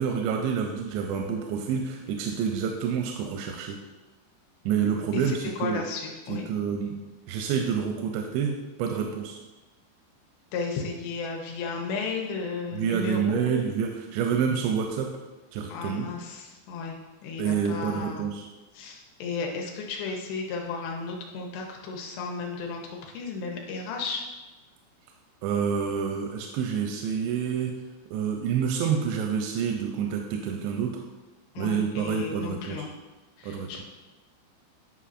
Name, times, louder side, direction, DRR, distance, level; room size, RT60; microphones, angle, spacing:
voice 1, 0.0-3.8 4.7-5.8 6.3-7.0 7.3-9.4 12.7-15.1 15.5-16.1 17.4-18.5 25.4-27.7 28.1-31.0 31.6-32.9 33.4-33.7, right 7 dB, 85° right, 2 dB, 2.8 m, -28 dB
voice 2, 5.1-6.5 10.5-13.6 15.7-17.0 17.2-18.3 18.7-24.3 31.6-32.9 33.4-33.8, left 4 dB, 80° left, 1 dB, 2.8 m, -34 dB
9.9 x 5.3 x 2.5 m, 1.2 s
omnidirectional pair, 5.0 m